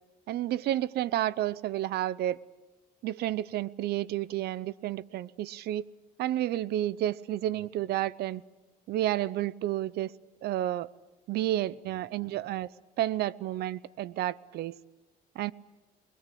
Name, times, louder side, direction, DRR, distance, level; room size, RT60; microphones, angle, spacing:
voice 1, 0.3-2.4 3.0-5.9 6.2-8.4 8.9-10.1 10.4-10.9 11.3-12.7 13.0-14.8 15.4-15.5, right 13 dB, 70° right, 0.8 m, -31 dB
28.0 x 20.5 x 8.5 m
cardioid pair, 110°, 17 cm